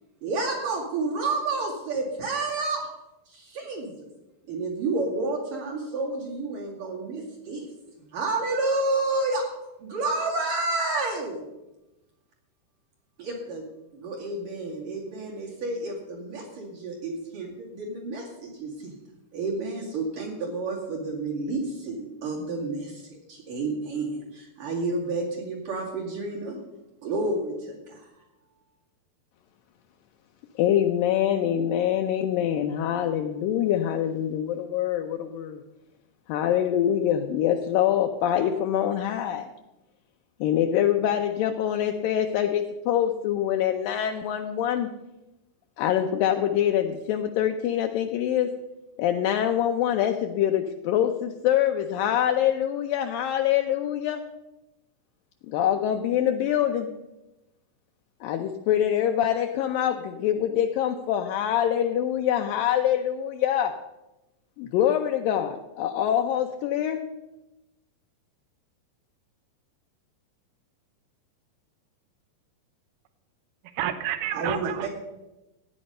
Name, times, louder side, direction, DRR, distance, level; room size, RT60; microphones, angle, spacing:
voice 1, 0.2-2.8 3.3-3.9 4.5-7.7 8.1-9.4 9.8-11.4 13.2-13.6 13.9-18.9 19.3-26.6 27.0-28.0 74.3-74.9, right 3 dB, 55° right, -4 dB, 3.7 m, -30 dB
voice 2, 30.6-35.6 36.3-39.4 40.4-44.9 45.8-48.5 49.0-54.2 55.5-56.9 58.2-63.7 64.6-67.0, left 10 dB, 85° left, 5 dB, 2.0 m, -25 dB
voice 3, 73.6-74.9, right 11 dB, 80° right, 10 dB, 1.8 m, -30 dB
15.5 x 9.6 x 5.5 m, 0.97 s
omnidirectional pair, 4.8 m